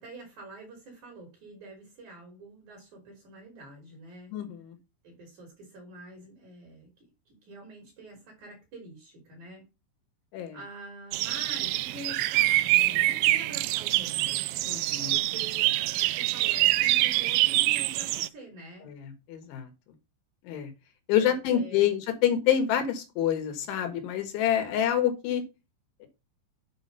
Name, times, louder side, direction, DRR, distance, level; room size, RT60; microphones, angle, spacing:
voice 1, 0.0-4.3 5.0-9.6 10.5-14.5 15.1-18.9 21.1-21.9, right 1 dB, 40° right, 1 dB, 4.3 m, -46 dB
voice 2, 4.3-4.8 10.3-10.6 14.7-15.1 18.9-19.7 20.4-20.7 21.1-25.4 26.0-26.1, left 10 dB, 75° left, 6 dB, 3.9 m, -27 dB
sound 1, 11.1-18.3, right 17 dB, 85° right, 2.6 m, -25 dB
8.7 x 6.0 x 5.5 m, 0.27 s
omnidirectional pair, 5.6 m